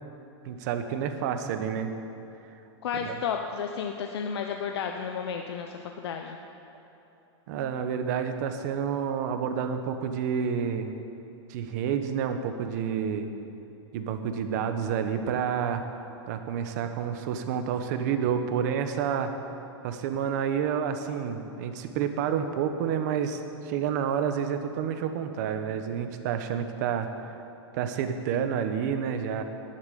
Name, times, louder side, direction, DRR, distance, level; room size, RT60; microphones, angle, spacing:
voice 1, 0.4-1.9 3.0-3.1 7.5-10.9 11.5-13.3 13.9-15.8 16.3-19.3 19.8-27.3 27.7-29.4, right 7 dB, 40° right, 7 dB, 1.1 m, -29 dB
voice 2, 2.8-6.4, left 6 dB, 65° left, 4 dB, 1.0 m, -32 dB
11.0 x 11.0 x 9.9 m, 3.0 s
supercardioid pair, 170°, 15 cm